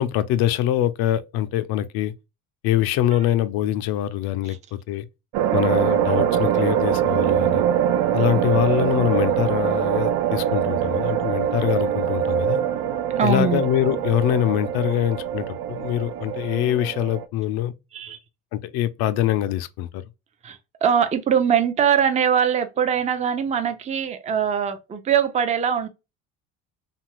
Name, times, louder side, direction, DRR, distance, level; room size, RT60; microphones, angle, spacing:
voice 1, 0.0-2.1 2.6-5.0 5.5-7.6 8.1-12.6 13.2-17.7 18.5-20.0, left 12 dB, 75° left, 0.5 m, -24 dB
sound 1, 5.3-17.2, right 10 dB, 85° right, 0.5 m, -23 dB
voice 2, 13.2-13.6 17.9-18.2 20.4-25.9, right 8 dB, 20° right, 0.4 m, -22 dB
2.7 x 2.4 x 3.0 m
cardioid pair, 95°, 37 cm